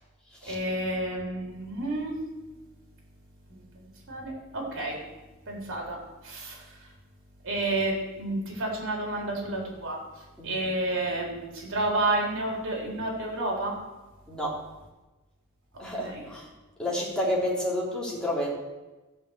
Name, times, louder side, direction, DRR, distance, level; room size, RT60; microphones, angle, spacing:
voice 1, 0.5-2.1 3.5-5.0 5.5-6.0 6.2-6.8 7.4-13.7 16.0-16.2, right 2 dB, 60° right, -1 dB, 3.8 m, -30 dB
voice 2, 14.3-14.6 15.8-16.5 16.8-18.5, left 1 dB, 5° left, -5 dB, 3.3 m, -30 dB
14.5 x 5.9 x 8.1 m, 1.1 s
head